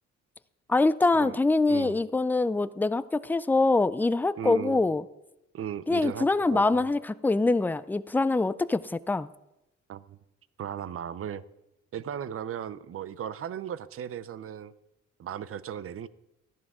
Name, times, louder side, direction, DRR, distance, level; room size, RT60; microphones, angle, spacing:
voice 1, 0.7-5.0 5.9-9.3, left 3 dB, 5° left, 16 dB, 0.3 m, -24 dB
voice 2, 1.7-2.0 4.4-4.8 5.5-6.9 9.9-10.2 10.6-11.4 11.9-14.7 15.2-16.1, right 9 dB, 50° right, 17 dB, 0.6 m, -36 dB
13.5 x 11.0 x 3.6 m, 0.91 s
cardioid pair, 90°, 30 cm